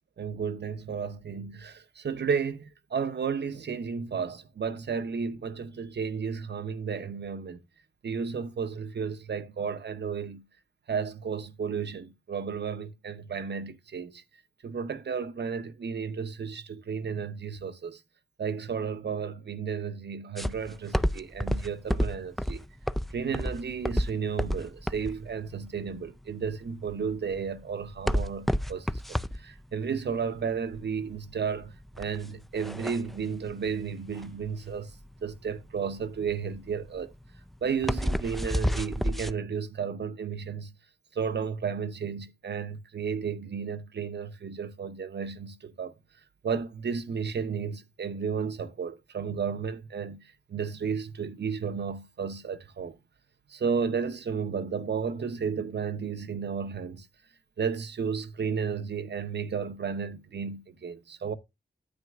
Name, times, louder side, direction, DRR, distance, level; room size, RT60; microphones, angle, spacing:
voice 1, 0.2-7.6 8.0-10.4 10.9-14.2 14.6-18.0 18.4-22.6 23.1-29.0 29.4-34.9 35.2-37.1 37.6-40.7 41.1-45.9 46.4-50.2 50.5-52.9 53.5-57.1 57.6-61.3, right 6 dB, 70° right, 0.8 m, -33 dB
sound 1, 20.4-39.3, equal, ahead, 0.4 m, -31 dB
9.6 x 8.2 x 2.4 m
cardioid pair, 45°, 19 cm